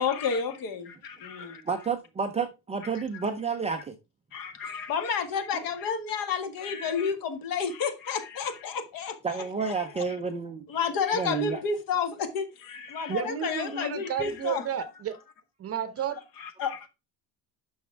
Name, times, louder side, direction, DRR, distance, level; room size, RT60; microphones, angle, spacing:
voice 1, 0.0-1.6 2.9-3.0 4.3-10.0 10.7-14.7 16.4-16.9, left 6 dB, 50° left, 1.7 m, -31 dB
voice 2, 1.7-3.9 5.5-5.6 9.2-10.7 11.1-11.6, right 5 dB, 15° right, 0.5 m, -30 dB
voice 3, 13.1-15.2 15.6-16.2, right 8 dB, 30° right, 0.9 m, -32 dB
10.5 x 6.3 x 3.4 m
cardioid pair, 180°, 44 cm